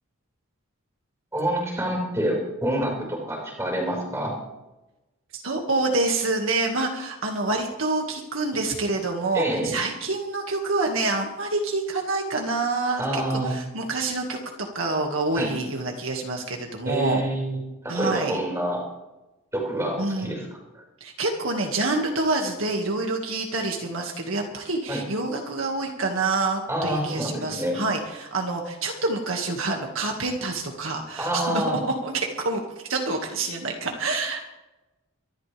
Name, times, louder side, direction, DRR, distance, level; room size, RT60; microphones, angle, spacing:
voice 1, 1.3-4.4 9.3-9.8 13.0-13.5 15.3-15.5 16.9-17.6 17.8-18.8 19.5-20.5 20.7-20.8 24.9-25.0 26.7-27.8 31.2-31.8, right 1 dB, 10° right, -1 dB, 5.3 m, -27 dB
voice 2, 5.3-14.4 14.7-17.2 17.9-18.4 20.0-20.3 21.0-32.6 32.9-34.4, right 2 dB, 65° right, 1 dB, 2.1 m, -27 dB
24.0 x 12.5 x 3.5 m, 1.0 s
head